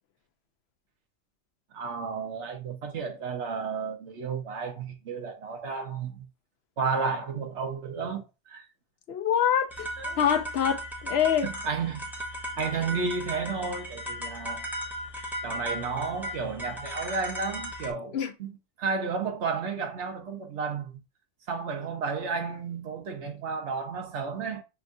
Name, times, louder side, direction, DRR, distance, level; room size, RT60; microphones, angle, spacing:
voice 1, 1.7-6.3 6.8-8.6 10.0-10.2 11.4-12.0 12.6-14.7 15.4-18.5 18.8-21.0 21.5-24.6, right 5 dB, 65° right, 1.2 m, -32 dB
voice 2, 9.1-9.7 10.2-11.5 18.1-18.3, left 9 dB, 65° left, 0.8 m, -25 dB
sound 1, 9.7-17.9, equal, ahead, 0.5 m, -36 dB
6.2 x 2.4 x 2.6 m
omnidirectional pair, 1.3 m